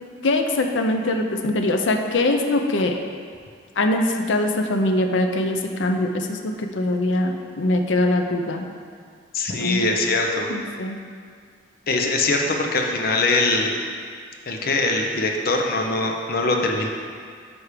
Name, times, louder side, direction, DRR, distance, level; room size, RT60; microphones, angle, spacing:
voice 1, 0.2-3.0 3.8-8.7 9.6-9.9 10.5-11.0, left 1 dB, 85° left, 4 dB, 0.6 m, -22 dB
voice 2, 9.3-10.5 11.9-13.8 14.5-16.9, left 2 dB, 55° left, 2 dB, 0.8 m, -22 dB
9.4 x 3.5 x 4.9 m, 2.1 s
head